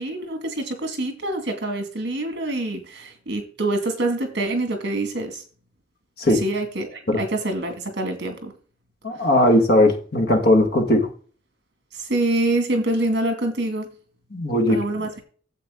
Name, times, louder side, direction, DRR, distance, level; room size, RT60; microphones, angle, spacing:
voice 1, 0.0-5.4 6.3-8.5 9.1-9.3 11.9-13.9 14.7-15.2, right 2 dB, 60° right, 5 dB, 2.3 m, -26 dB
voice 2, 9.0-11.1 14.3-14.8, left 1 dB, 55° left, 4 dB, 2.0 m, -18 dB
9.8 x 7.8 x 3.8 m, 0.41 s
head